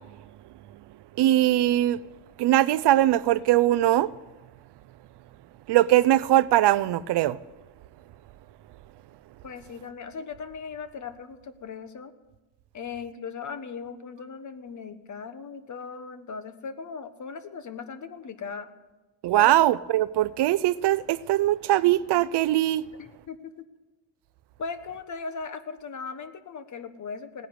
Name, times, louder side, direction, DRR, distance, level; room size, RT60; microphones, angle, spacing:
voice 1, 1.2-2.0 2.4-4.1 5.7-7.4 19.2-22.9, right 14 dB, 65° right, 0.6 m, -21 dB
voice 2, 9.4-12.1 12.7-18.7 19.3-19.6 23.0-23.7 24.6-27.5, left 5 dB, 40° left, 1.3 m, -38 dB
17.5 x 10.0 x 7.9 m
cardioid pair, 135°, 44 cm